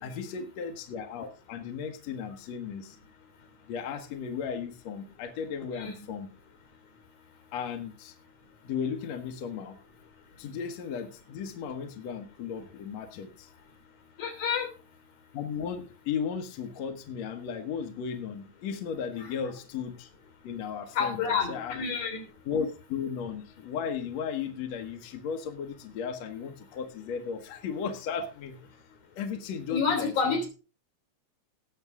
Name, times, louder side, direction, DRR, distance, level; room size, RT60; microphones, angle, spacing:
voice 1, 0.0-3.0 3.7-6.3 7.5-8.1 8.6-9.8 10.4-13.5 15.3-20.1 20.4-21.8 22.5-28.6 29.2-30.5, left 7 dB, 65° left, 4 dB, 2.3 m, -35 dB
voice 2, 14.2-14.7 19.2-19.3 20.9-22.2 29.7-30.5, left 5 dB, 90° left, 5 dB, 4.6 m, -29 dB
18.5 x 7.3 x 3.6 m, 0.34 s
omnidirectional pair, 3.4 m